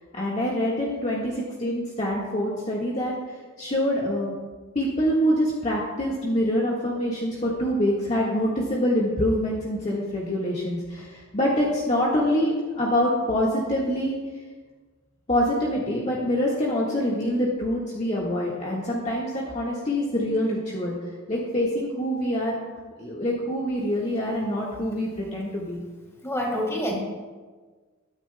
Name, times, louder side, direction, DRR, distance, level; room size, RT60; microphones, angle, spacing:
voice 1, 0.1-4.4 4.7-14.2 15.3-20.9 21.3-22.6 23.0-25.8, equal, 35° left, -5 dB, 1.7 m, -25 dB
voice 2, 26.2-26.9, equal, 15° left, -2 dB, 2.9 m, -26 dB
21.0 x 10.0 x 2.3 m, 1.4 s
head